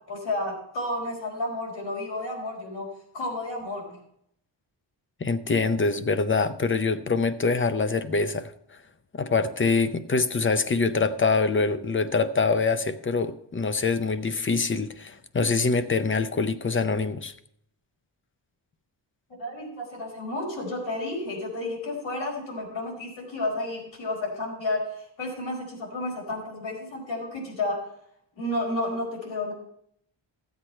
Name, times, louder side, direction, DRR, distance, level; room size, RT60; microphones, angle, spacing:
voice 1, 0.1-2.9 3.1-4.0 19.4-24.9 25.2-27.9 28.4-29.5, left 2 dB, 70° left, 4.5 m, -31 dB
voice 2, 5.2-8.5 9.1-17.3, left 4 dB, 25° left, 0.6 m, -24 dB
14.5 x 8.1 x 4.4 m
wide cardioid pair, 150°, 46 cm